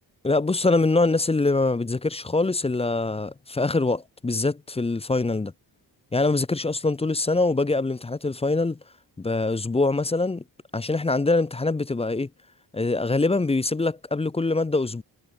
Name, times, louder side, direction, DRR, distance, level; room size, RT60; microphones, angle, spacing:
voice 1, 0.2-5.5 6.1-8.8 9.2-10.4 10.7-12.3 12.7-15.0, left 3 dB, 15° left, 0.5 m, -24 dB
wide cardioid pair, 125°, 44 cm